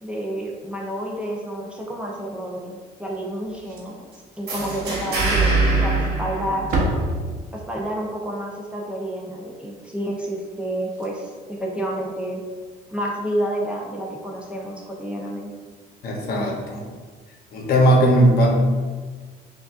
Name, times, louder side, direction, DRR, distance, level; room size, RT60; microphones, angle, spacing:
voice 1, 0.0-4.0 4.4-6.7 7.5-12.4 12.9-15.5, right 1 dB, 5° right, -3 dB, 0.7 m, -29 dB
Slam, 3.5-4.2 4.4-4.6 5.0-5.1 5.9-6.3 6.5-7.8 10.5-10.6 10.8-11.1 12.6-12.7, right 1 dB, 55° right, 0.9 m, -28 dB
sound 1, 4.5-7.2, right 3 dB, 70° right, 1.2 m, -23 dB
voice 2, 16.0-16.8 17.5-18.6, right 1 dB, 65° left, 0 dB, 0.9 m, -18 dB
5.7 x 2.5 x 2.5 m, 1.4 s
cardioid pair, 110°, 17 cm